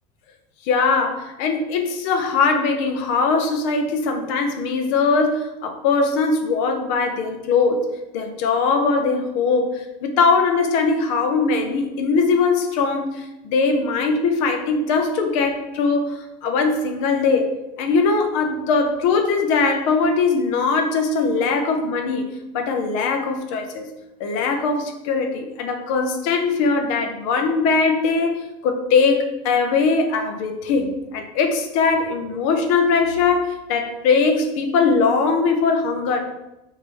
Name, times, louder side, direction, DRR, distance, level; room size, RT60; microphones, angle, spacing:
voice 1, 0.6-17.5 17.8-22.3 22.5-23.9 24.2-36.2, left 4 dB, 60° left, 5 dB, 0.7 m, -21 dB
5.2 x 2.7 x 3.1 m, 0.95 s
cardioid pair, 175°, 19 cm